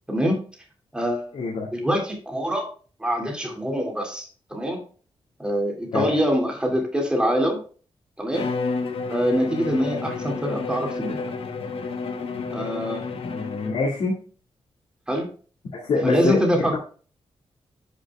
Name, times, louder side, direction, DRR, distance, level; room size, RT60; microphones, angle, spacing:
voice 1, 0.1-0.4 0.9-1.4 1.7-2.7 3.0-4.8 5.4-7.6 8.2-8.5 9.1-11.2 12.5-13.1 15.1-15.3 16.0-16.8, equal, 10° right, 1 dB, 2.2 m, -24 dB
voice 2, 1.3-1.7 5.9-6.2 13.2-14.2 15.7-16.4, left 3 dB, 90° left, -4 dB, 1.9 m, -25 dB
Bowed string instrument, 8.3-14.0, left 4 dB, 70° left, 1.0 m, -30 dB
11.5 x 5.4 x 2.3 m, 0.38 s
wide cardioid pair, 155°, 10 cm